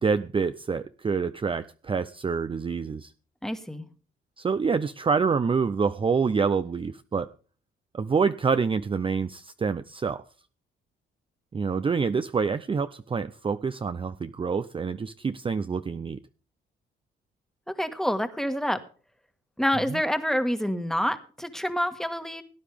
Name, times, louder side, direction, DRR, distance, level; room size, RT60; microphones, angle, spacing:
voice 1, 0.0-3.1 4.4-7.3 7.9-10.2 11.5-16.2 19.9-20.0, right 5 dB, 25° right, 11 dB, 0.6 m, -27 dB
voice 2, 3.4-3.8 17.8-18.8 19.6-22.4, equal, ahead, 8 dB, 1.6 m, -27 dB
18.0 x 9.9 x 3.5 m, 0.38 s
cardioid pair, 90°, 20 cm